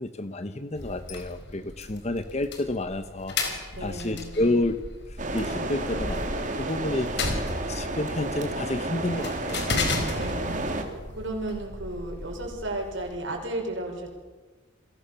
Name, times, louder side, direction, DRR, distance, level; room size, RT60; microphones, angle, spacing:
voice 1, 0.0-3.4 3.8-4.8 5.1-7.3 7.7-9.8, left 2 dB, 35° left, 10 dB, 1.0 m, -30 dB
sound 1, 0.7-13.2, left 3 dB, 60° left, 4.7 m, -35 dB
voice 2, 3.7-4.3 10.0-10.6 11.1-14.2, right 1 dB, 65° right, 3 dB, 5.9 m, -34 dB
sound 2, 5.2-10.8, right 2 dB, 40° right, 3.3 m, -31 dB
29.5 x 21.5 x 7.0 m, 1.3 s
head